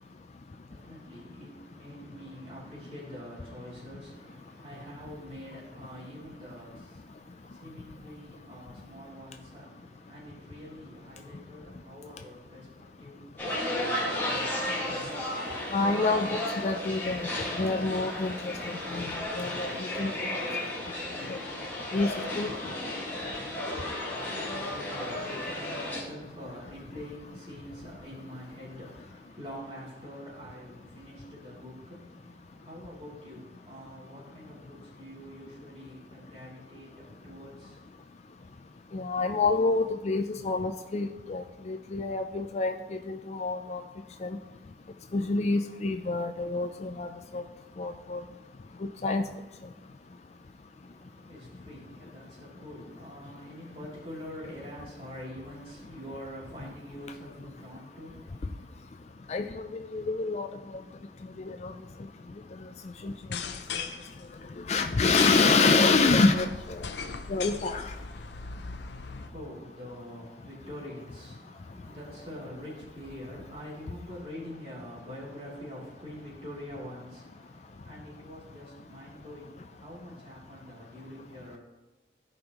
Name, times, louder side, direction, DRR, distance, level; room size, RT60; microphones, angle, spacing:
voice 1, 0.7-14.9 24.4-37.8 50.8-58.7 69.1-81.6, equal, 35° right, -6 dB, 3.0 m, -45 dB
sound 1, 13.4-26.0, left 1 dB, 10° left, 1.8 m, -33 dB
voice 2, 15.7-17.3 17.6-20.4 21.3-21.4 21.9-22.1 22.4-22.5 38.9-42.7 43.1-43.8 44.2-44.4 45.1-47.1 47.3-47.4 47.8-48.2 49.0-49.2 59.3-60.5 61.5-61.7 63.0-63.1 64.7-66.8 67.3-67.9, left 3 dB, 35° left, 6 dB, 0.4 m, -27 dB
sound 2, 63.2-69.3, left 5 dB, 75° left, 0.7 m, -38 dB
16.0 x 5.4 x 3.0 m, 1.1 s
head